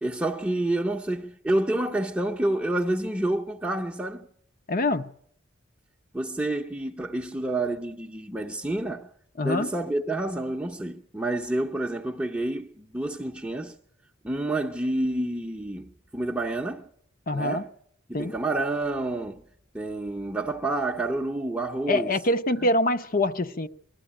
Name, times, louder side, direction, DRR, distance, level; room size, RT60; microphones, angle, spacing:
voice 1, 0.0-4.3 6.1-9.1 9.4-13.8 14.2-16.9 17.3-17.7 18.1-19.4 19.7-22.1, right 2 dB, 10° right, 0.7 m, -28 dB
voice 2, 4.7-5.1 9.4-9.7 17.3-17.6 18.1-18.3 21.9-23.7, left 1 dB, 45° left, 0.8 m, -25 dB
20.0 x 13.0 x 10.0 m
head